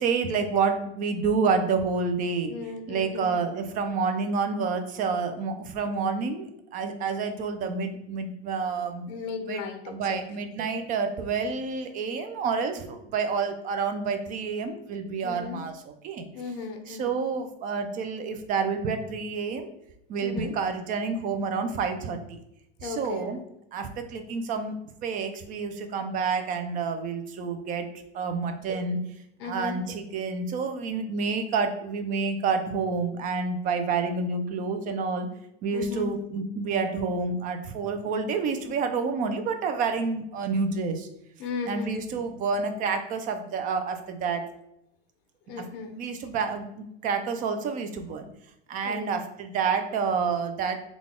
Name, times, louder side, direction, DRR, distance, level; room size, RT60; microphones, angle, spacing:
voice 1, 0.0-2.5 2.9-6.5 6.7-9.0 9.5-16.3 16.9-19.7 20.1-22.4 22.8-23.4 23.7-24.8 25.0-27.9 28.1-29.0 29.4-35.3 35.6-41.1 41.6-44.4 45.9-48.3 48.7-50.8, right 5 dB, 30° right, 8 dB, 0.4 m, -29 dB
voice 2, 2.5-3.4 9.1-10.2 15.2-15.6 16.3-17.1 20.2-20.5 22.8-23.3 29.4-29.8 35.7-36.1 41.4-42.0 45.5-46.0 48.8-49.1, left 4 dB, 50° left, 6 dB, 0.6 m, -36 dB
3.8 x 2.3 x 3.6 m, 0.80 s
supercardioid pair, 140°, 30 cm